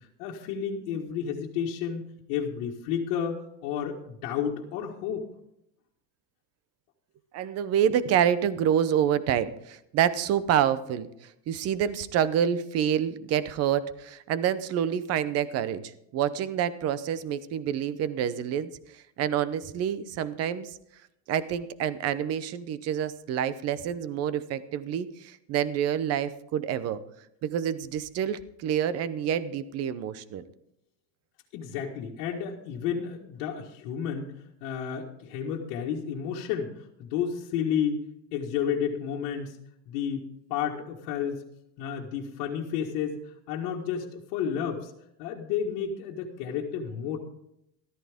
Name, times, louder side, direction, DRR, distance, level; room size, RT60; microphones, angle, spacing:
voice 1, 0.0-5.2 31.5-34.3 34.6-38.0 38.3-39.6 39.9-41.4 41.8-44.9 45.2-47.2, left 8 dB, 60° left, -3 dB, 1.8 m, -31 dB
voice 2, 7.3-15.8 16.1-18.7 19.2-20.8 21.3-27.0 27.4-30.4, right 9 dB, 30° right, 15 dB, 0.7 m, -27 dB
14.0 x 14.0 x 3.6 m, 0.78 s
supercardioid pair, 150°, 50 cm